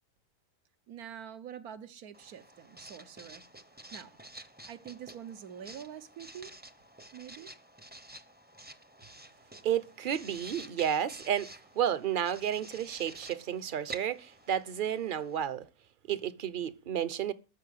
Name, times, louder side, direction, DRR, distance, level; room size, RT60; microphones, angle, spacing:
voice 1, 0.9-3.4 3.9-4.2 4.7-6.5 7.1-7.5, right 9 dB, 75° right, 1.5 m, -46 dB
Writing, 2.1-15.4, right 2 dB, 10° right, 0.7 m, -50 dB
voice 2, 9.6-11.5 11.7-15.7 16.1-17.3, right 9 dB, 40° right, 0.8 m, -31 dB
13.5 x 5.6 x 9.3 m
omnidirectional pair, 1.6 m